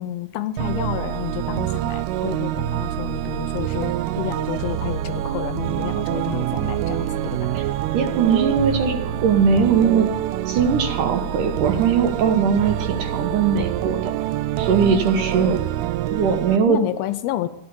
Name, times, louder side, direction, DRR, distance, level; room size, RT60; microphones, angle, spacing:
voice 1, 0.0-7.5 16.7-17.5, left 13 dB, 80° left, 12 dB, 2.4 m, -30 dB
sound 1, 0.6-16.6, right 12 dB, 85° right, 2.6 m, -26 dB
voice 2, 7.9-10.1 10.5-14.1 14.6-15.6 16.1-16.8, right 6 dB, 65° right, 5 dB, 2.4 m, -20 dB
14.0 x 10.0 x 7.1 m, 0.87 s
omnidirectional pair, 4.5 m